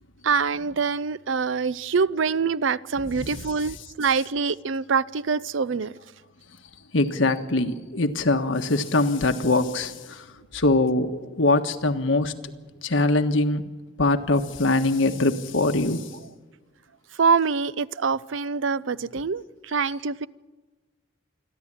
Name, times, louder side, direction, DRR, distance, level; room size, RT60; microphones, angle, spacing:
voice 1, 0.2-5.9 17.2-20.3, right 5 dB, 85° right, 0.6 m, -25 dB
voice 2, 6.9-10.2 10.5-12.3 12.8-13.6 14.0-16.0, left 2 dB, 90° left, 1.5 m, -22 dB
27.0 x 11.0 x 8.9 m
head